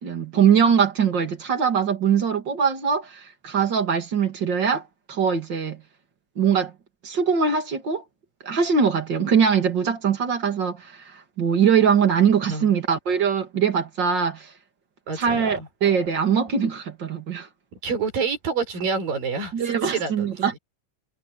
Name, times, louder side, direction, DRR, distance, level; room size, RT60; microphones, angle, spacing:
voice 1, 0.0-4.8 5.1-5.8 6.4-6.7 7.0-8.0 8.4-14.5 15.1-17.5 19.5-20.6, right 7 dB, 35° right, 2.8 m, -22 dB
voice 2, 15.1-15.7 17.8-20.4, right 5 dB, 80° right, 7.7 m, -28 dB
omnidirectional pair, 3.9 m